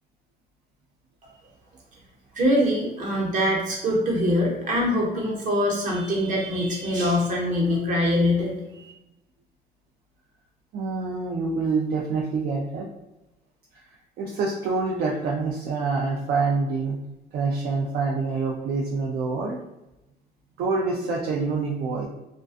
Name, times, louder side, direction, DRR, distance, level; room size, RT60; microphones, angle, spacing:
voice 1, 2.3-8.9, left 1 dB, 50° right, -2 dB, 0.9 m, -23 dB
voice 2, 10.7-12.9 14.2-17.0 17.3-19.6 20.6-22.1, right 4 dB, 65° right, -2 dB, 0.4 m, -26 dB
2.4 x 2.2 x 2.4 m, 0.94 s
cardioid pair, 110°, 17 cm